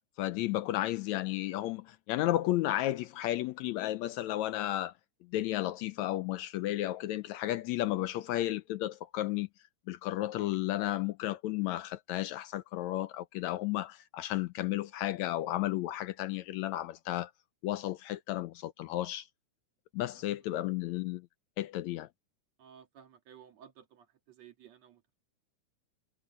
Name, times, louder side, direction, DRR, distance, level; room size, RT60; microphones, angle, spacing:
voice 1, 0.2-4.9 5.3-9.5 9.9-17.3 17.6-19.3 19.9-21.3 21.6-22.1, left 15 dB, 80° left, 1.8 m, -33 dB
voice 2, 22.6-25.1, right 9 dB, 60° right, 3.1 m, -56 dB
omnidirectional pair, 3.5 m